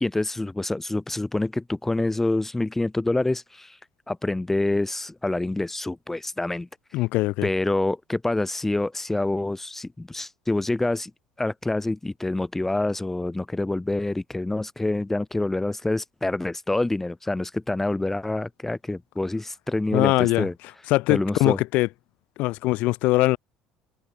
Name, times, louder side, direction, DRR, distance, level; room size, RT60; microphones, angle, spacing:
voice 1, 0.0-3.8 4.1-6.7 7.4-11.1 11.4-20.5 21.1-21.6, left 2 dB, 10° left, 0.7 m, -26 dB
voice 2, 6.9-7.5 19.9-20.5 20.9-21.9 22.4-23.4, left 20 dB, 65° left, 0.4 m, -21 dB
hypercardioid pair, 65°, 3 cm